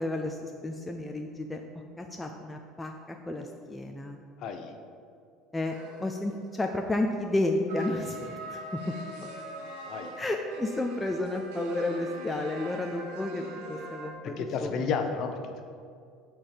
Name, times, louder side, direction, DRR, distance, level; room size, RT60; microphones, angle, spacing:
voice 1, 0.0-1.6 2.0-4.2 5.5-8.2 8.5-8.6 8.9-9.0 9.2-9.3 10.2-14.7, left 2 dB, 5° left, 2 dB, 0.4 m, -32 dB
voice 2, 4.4-4.7 9.9-10.2 14.4-15.6, left 5 dB, 40° left, 6 dB, 0.8 m, -32 dB
sound 1, 5.7-6.5 7.7-14.1, right 1 dB, 85° right, 1.5 m, -42 dB
13.0 x 4.5 x 5.1 m, 2.3 s
cardioid pair, 175°, 0 cm